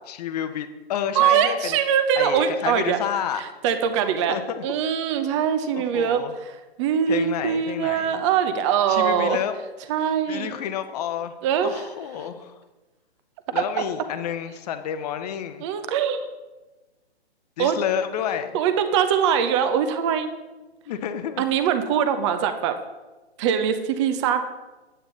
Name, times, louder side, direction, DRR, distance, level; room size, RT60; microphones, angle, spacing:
voice 1, 0.1-1.8 2.2-3.4 4.3-4.9 5.7-6.3 7.1-8.2 8.9-9.6 10.3-11.3 11.6-12.6 13.5-15.7 17.6-18.5 20.9-21.4, left 9 dB, 35° left, 9 dB, 0.8 m, -30 dB
voice 2, 1.2-3.0 3.4-4.3 4.6-6.5 6.8-9.4 9.9-10.6 11.4-11.8 13.5-13.6 15.6-16.3 17.6-17.8 18.5-20.3 21.4-22.7 23.4-24.4, right 8 dB, 25° right, 9 dB, 0.7 m, -22 dB
9.0 x 8.8 x 3.9 m, 1.1 s
figure-of-eight pair, 130°, 33 cm